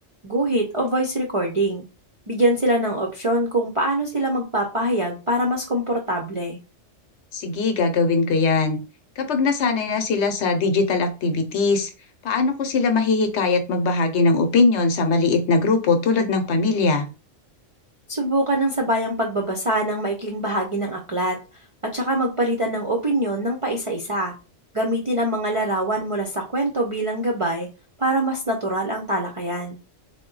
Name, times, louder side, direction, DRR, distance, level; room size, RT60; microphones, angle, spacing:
voice 1, 0.2-1.8 2.3-6.6 18.1-21.4 21.9-24.3 24.7-27.7 28.0-29.8, right 1 dB, 45° right, 0 dB, 0.4 m, -24 dB
voice 2, 7.3-8.8 9.2-11.9 12.2-17.1, left 3 dB, 65° left, 6 dB, 0.9 m, -20 dB
3.7 x 2.2 x 3.7 m, 0.32 s
omnidirectional pair, 1.3 m